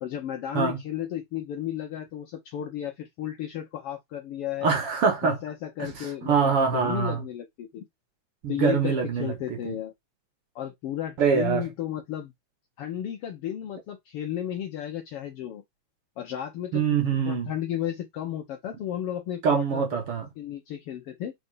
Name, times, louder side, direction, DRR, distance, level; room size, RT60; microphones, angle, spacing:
voice 1, 0.0-4.7 5.2-7.8 8.5-9.9 10.5-12.3 12.8-15.6 16.2-16.8 17.2-19.8 20.4-21.3, left 11 dB, 70° left, 1.4 m, -33 dB
voice 2, 4.6-5.4 5.8-7.2 8.4-9.3 9.7-9.8 11.2-11.6 16.7-17.5 19.4-20.3, right 6 dB, 55° right, 2.0 m, -24 dB
4.4 x 4.3 x 5.4 m
omnidirectional pair, 3.4 m